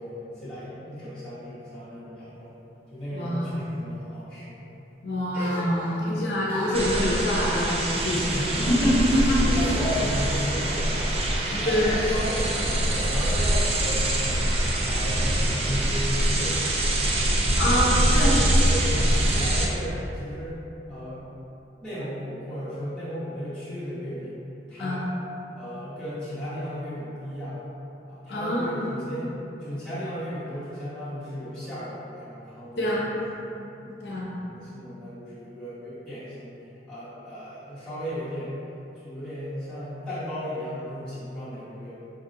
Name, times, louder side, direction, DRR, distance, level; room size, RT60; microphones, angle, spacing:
voice 1, 0.0-2.6 2.9-4.7 5.4-6.2 8.1-16.6 17.3-17.4 17.8-20.6 20.9-21.2 21.8-24.3 24.7-25.1 25.5-27.6 28.1-29.3 29.6-33.2 33.6-34.2 34.5-36.6 36.9-38.5 38.9-42.0, equal, 5° left, -14 dB, 1.1 m, -35 dB
voice 2, 3.1-3.7 5.0-8.2 8.5-9.4 10.0-10.1 11.5-12.0 17.6-18.3 24.8-25.0 28.3-28.7 32.8-33.1 34.0-34.3, equal, 65° left, -6 dB, 0.6 m, -25 dB
sound 1, 5.3-6.1 6.5-9.2 9.5-10.3, equal, 60° right, 1.4 m, -38 dB
sound 2, 6.7-19.7, right 1 dB, 35° right, 0.3 m, -24 dB
4.1 x 2.7 x 2.5 m, 2.9 s
head